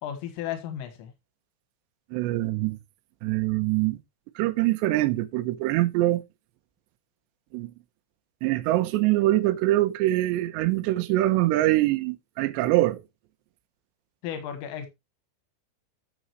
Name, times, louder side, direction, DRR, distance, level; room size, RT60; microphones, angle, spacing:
voice 1, 0.0-1.1 14.2-14.9, left 9 dB, 90° left, 4.2 m, -34 dB
voice 2, 2.1-2.8 3.2-4.0 4.4-6.2 7.5-7.7 8.4-13.0, right 16 dB, 75° right, 2.9 m, -24 dB
12.5 x 7.0 x 3.1 m
omnidirectional pair, 5.6 m